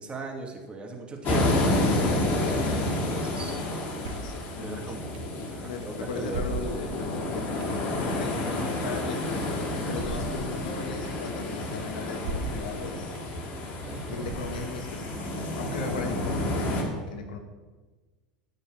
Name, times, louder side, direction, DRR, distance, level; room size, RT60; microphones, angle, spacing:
voice 1, 0.0-5.2 5.5-6.4 13.8-14.4, right 3 dB, 25° right, 2 dB, 2.6 m, -39 dB
sound 1, 1.2-16.8, left 2 dB, 45° left, 3.0 m, -30 dB
sound 2, 4.0-4.4 5.1-5.2 6.3-7.0 7.6-7.8 9.9-10.4 11.1-11.2 12.2-12.7 13.1-13.2 14.2-14.8, right 3 dB, 70° right, 2.2 m, -35 dB
voice 2, 4.2-5.1 5.6-13.2 14.0-17.4, left 3 dB, 80° left, 4 dB, 1.9 m, -37 dB
14.0 x 5.4 x 7.9 m, 1.3 s
hypercardioid pair, 95°, 4 cm